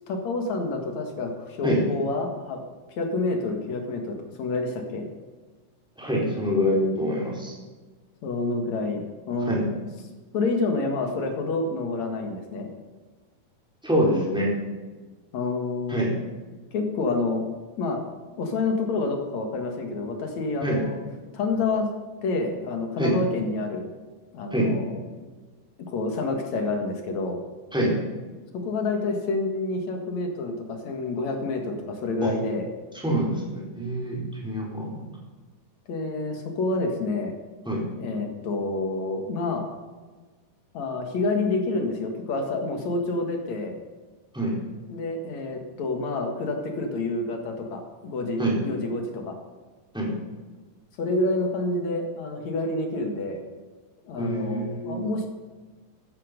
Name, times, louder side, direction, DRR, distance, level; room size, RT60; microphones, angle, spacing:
voice 1, 0.1-2.6 3.0-5.1 8.2-9.6 10.3-12.7 15.3-16.1 16.7-17.4 17.8-18.0 18.4-21.0 21.3-21.9 22.2-23.9 24.3-24.9 25.9-27.4 28.5-32.7 35.9-37.3 38.0-39.7 40.7-43.8 44.9-49.4 51.0-53.4 54.0-55.3, left 3 dB, 55° left, 3 dB, 2.8 m, -28 dB
voice 2, 6.0-7.5 9.5-9.7 13.8-14.5 15.9-16.1 20.6-20.8 23.0-23.2 24.5-24.7 27.7-28.0 32.2-32.3 32.9-35.0 37.7-37.8 44.3-44.5 48.4-48.6 49.9-50.1 54.2-55.0, equal, ahead, -4 dB, 3.9 m, -25 dB
15.5 x 13.0 x 5.3 m, 1.3 s
omnidirectional pair, 4.3 m